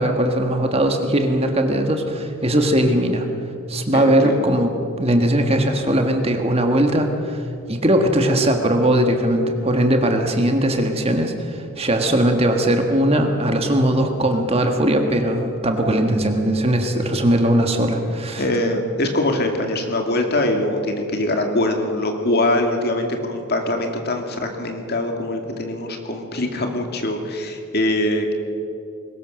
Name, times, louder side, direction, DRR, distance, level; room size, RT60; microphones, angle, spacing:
voice 1, 0.0-3.3 3.7-4.7 5.0-18.4, right 1 dB, 25° right, 4 dB, 1.6 m, -19 dB
voice 2, 3.9-4.5 16.9-17.0 18.4-28.3, left 1 dB, 45° left, 3 dB, 2.4 m, -23 dB
22.0 x 19.5 x 6.5 m, 2.6 s
head